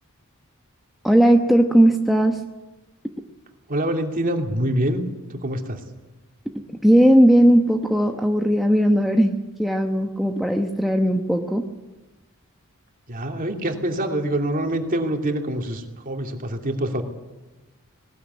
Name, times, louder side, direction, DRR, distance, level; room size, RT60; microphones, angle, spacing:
voice 1, 1.0-2.4 6.7-11.6, equal, ahead, 2 dB, 1.0 m, -17 dB
voice 2, 3.7-5.0 5.3-5.8 13.1-17.0, right 1 dB, 40° right, 3 dB, 2.8 m, -25 dB
20.0 x 19.5 x 9.6 m, 1.1 s
head